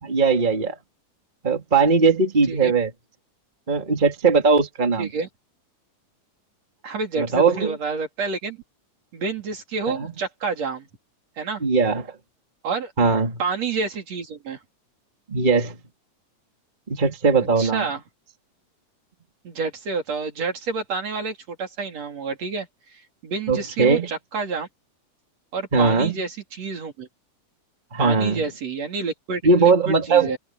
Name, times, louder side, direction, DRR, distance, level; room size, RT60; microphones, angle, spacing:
voice 1, 0.0-0.7 1.4-2.9 3.7-5.1 7.2-7.8 9.9-10.1 11.6-12.1 13.0-13.4 15.3-15.7 16.9-17.8 23.5-24.1 25.7-26.1 27.9-28.4 29.4-30.3, right 4 dB, 15° right, 2.3 m, -19 dB
voice 2, 5.0-5.3 6.8-8.6 9.1-10.9 11.4-11.6 12.6-12.9 13.4-14.6 17.6-18.0 19.4-24.7 25.5-27.1 28.0-30.4, right 4 dB, 55° right, 4.0 m, -29 dB
omnidirectional pair, 3.5 m